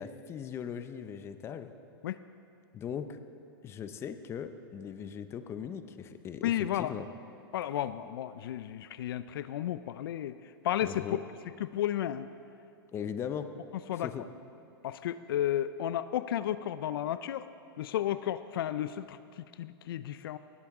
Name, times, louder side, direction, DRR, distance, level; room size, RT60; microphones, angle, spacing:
voice 1, 0.0-1.7 2.7-3.2 3.6-7.1 10.8-11.2 12.9-13.5 14.0-14.2, left 8 dB, 20° left, 10 dB, 0.5 m, -39 dB
voice 2, 6.4-6.9 7.5-11.2 11.6-12.3 13.9-14.1 14.8-17.5 17.8-20.4, left 11 dB, 70° left, 14 dB, 0.4 m, -33 dB
18.5 x 8.5 x 3.6 m, 2.5 s
hypercardioid pair, 130°, 12 cm